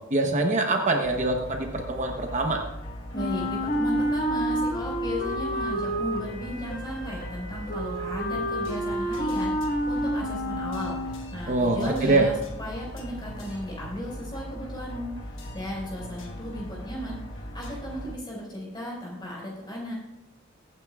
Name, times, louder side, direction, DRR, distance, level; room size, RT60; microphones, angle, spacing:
voice 1, 0.1-2.6 11.5-12.3, right 2 dB, 35° right, 2 dB, 0.9 m, -24 dB
sound 1, 1.0-18.2, equal, 65° left, 1.4 m, -39 dB
Wind instrument woodwind instrument, 3.1-11.4, equal, 45° left, 1.5 m, -29 dB
voice 2, 3.1-15.2 15.5-19.9, equal, 20° left, -3 dB, 4.8 m, -35 dB
22.5 x 9.4 x 2.4 m, 0.91 s
head